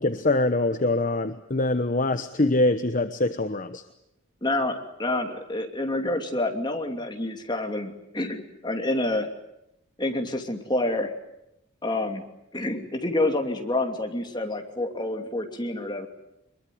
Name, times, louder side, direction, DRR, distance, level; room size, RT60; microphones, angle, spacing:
voice 1, 0.0-3.8, left 2 dB, 40° left, 9 dB, 1.0 m, -24 dB
voice 2, 4.4-9.3 10.0-11.1 11.8-16.1, left 2 dB, 20° left, 4 dB, 2.8 m, -28 dB
24.0 x 22.0 x 9.5 m, 0.84 s
head